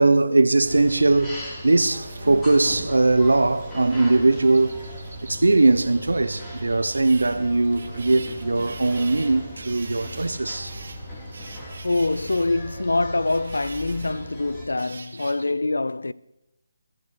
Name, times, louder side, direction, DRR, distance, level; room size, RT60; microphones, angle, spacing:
voice 1, 0.0-1.4 1.6-4.8 5.3-10.8, right 2 dB, 85° right, 0.8 m, -20 dB
sound 1, 0.6-14.7, equal, 15° left, 3.9 m, -38 dB
sound 2, 1.3-15.5, right 3 dB, 65° right, 1.6 m, -45 dB
voice 2, 11.8-16.1, left 2 dB, 85° left, 0.4 m, -24 dB
15.5 x 14.0 x 3.3 m
figure-of-eight pair, 155°, 0 cm